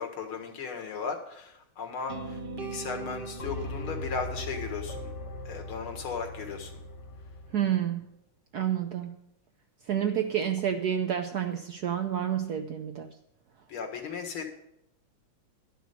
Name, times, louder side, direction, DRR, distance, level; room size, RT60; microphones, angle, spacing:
voice 1, 0.0-5.1 5.5-6.7 13.7-14.5, left 5 dB, 85° left, 3 dB, 2.5 m, -36 dB
sound 1, 2.1-6.2, right 3 dB, 85° right, 0.5 m, -41 dB
sound 2, 3.4-7.6, left 1 dB, 45° left, 1.1 m, -39 dB
voice 2, 7.5-8.0 8.5-9.1 9.9-13.1, right 9 dB, 65° right, 5 dB, 1.0 m, -29 dB
12.0 x 6.1 x 8.1 m, 0.78 s
omnidirectional pair, 2.3 m